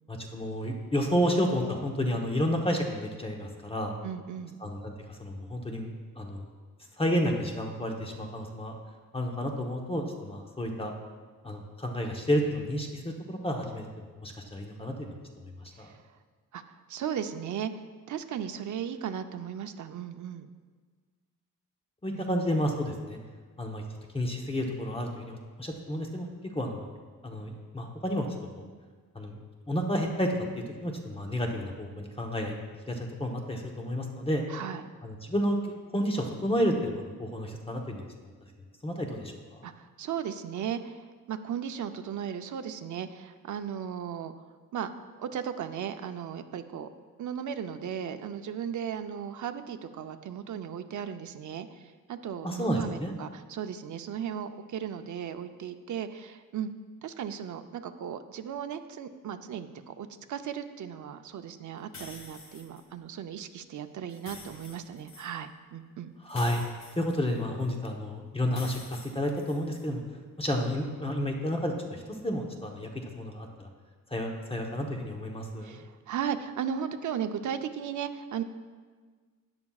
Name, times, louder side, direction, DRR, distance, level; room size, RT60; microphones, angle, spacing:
voice 1, 0.1-3.9 4.6-5.9 6.1-6.4 7.0-8.7 9.1-10.9 11.4-13.8 14.2-15.1 15.8-15.9 22.0-23.2 23.6-23.8 24.1-26.9 27.2-28.3 28.6-28.7 29.1-29.4 29.7-30.4 30.8-32.5 32.9-34.4 35.0-38.0 38.8-39.3 52.4-53.1 66.2-66.6 67.0-70.0 70.4-72.9 73.1-73.7 74.1-75.7, equal, 15° left, 1 dB, 0.9 m, -31 dB
voice 2, 4.0-4.6 15.8-16.0 16.5-20.5 22.1-22.3 34.5-34.8 39.6-44.3 44.7-44.9 45.2-46.9 47.2-56.7 57.0-66.1 75.6-78.4, right 8 dB, 60° right, 8 dB, 0.6 m, -36 dB
sound 1, 61.9-62.8 64.1-65.3 66.3-67.7 68.5-69.9, left 3 dB, 50° left, 1.6 m, -47 dB
13.0 x 9.7 x 2.4 m, 1.5 s
wide cardioid pair, 145°, 35 cm